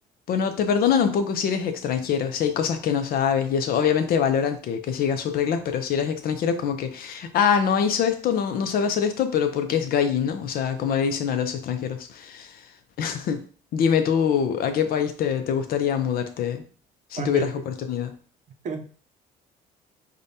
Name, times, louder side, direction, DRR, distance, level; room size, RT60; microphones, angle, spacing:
voice 1, 0.3-12.7 13.0-13.4 13.7-16.6 17.1-18.1, left 7 dB, 60° left, 7 dB, 0.6 m, -24 dB
voice 2, 17.2-17.6 18.6-18.8, right 6 dB, 45° right, 5 dB, 0.6 m, -31 dB
5.0 x 2.3 x 2.7 m, 0.42 s
cardioid pair, 110°, 17 cm